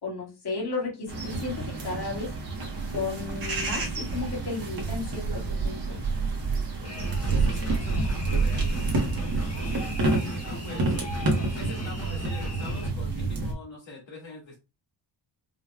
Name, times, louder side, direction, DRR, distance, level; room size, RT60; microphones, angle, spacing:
voice 1, 0.0-2.3 2.9-6.0, left 3 dB, 60° left, -4 dB, 2.3 m, -34 dB
sound 1, 1.1-13.5, right 3 dB, 50° right, 1.3 m, -28 dB
sound 2, 6.8-12.9, left 1 dB, 35° left, 1.3 m, -39 dB
voice 2, 7.2-11.0 11.5-14.5, left 3 dB, 80° left, -4 dB, 2.0 m, -43 dB
5.4 x 3.1 x 2.3 m, 0.28 s
wide cardioid pair, 170°, 44 cm